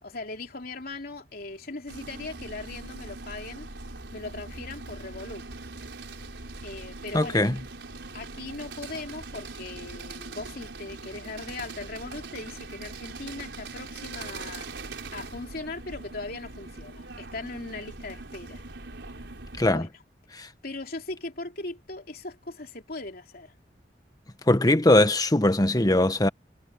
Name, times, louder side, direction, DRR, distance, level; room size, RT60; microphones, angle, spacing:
voice 1, 0.0-3.7 4.1-5.4 6.6-7.4 8.1-18.6 19.7-19.9 20.4-23.5, left 3 dB, 60° left, 3.1 m, -39 dB
sound 1, 1.9-19.7, right 3 dB, 85° right, 4.6 m, -41 dB
voice 2, 7.1-7.6 19.6-19.9 20.3-20.5 24.5-26.3, left 1 dB, 20° left, 1.3 m, -21 dB
head